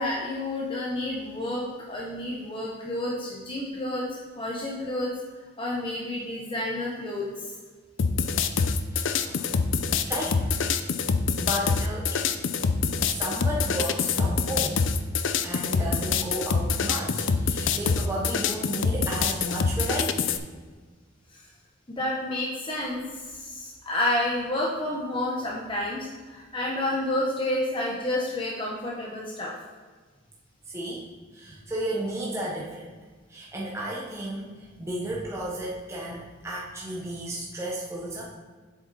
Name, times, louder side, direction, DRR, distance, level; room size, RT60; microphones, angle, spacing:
voice 1, 0.0-4.1 4.3-5.1 5.6-7.5 21.3-21.5 21.9-29.5, left 1 dB, 25° left, -4 dB, 1.1 m, -30 dB
sound 1, 8.0-20.4, left 5 dB, 65° left, 0.5 m, -25 dB
voice 2, 8.9-9.7 10.1-10.5 11.4-12.3 13.1-14.8 15.4-20.3 30.7-31.0 31.3-33.0 33.3-38.3, right 1 dB, 15° right, -5 dB, 1.0 m, -33 dB
7.8 x 6.5 x 4.2 m, 1.4 s
head